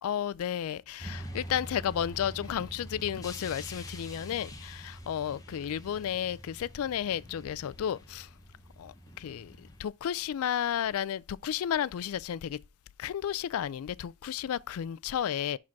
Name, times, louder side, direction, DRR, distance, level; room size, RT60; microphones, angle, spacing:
voice 1, 0.0-8.3 8.8-12.6 13.0-15.6, left 9 dB, 85° left, 0.3 m, -33 dB
sound 1, 1.0-9.8, equal, 15° left, 0.8 m, -45 dB
5.9 x 4.9 x 4.6 m
head